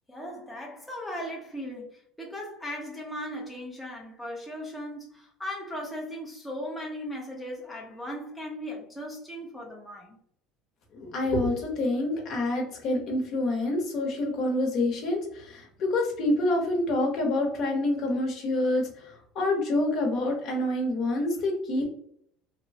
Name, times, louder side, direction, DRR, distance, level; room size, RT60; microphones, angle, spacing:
voice 1, 0.1-10.2, equal, 5° left, -3 dB, 0.6 m, -37 dB
voice 2, 10.9-21.8, left 2 dB, 50° left, 1 dB, 0.9 m, -27 dB
3.0 x 2.0 x 2.7 m, 0.64 s
cardioid pair, 135°, 0 cm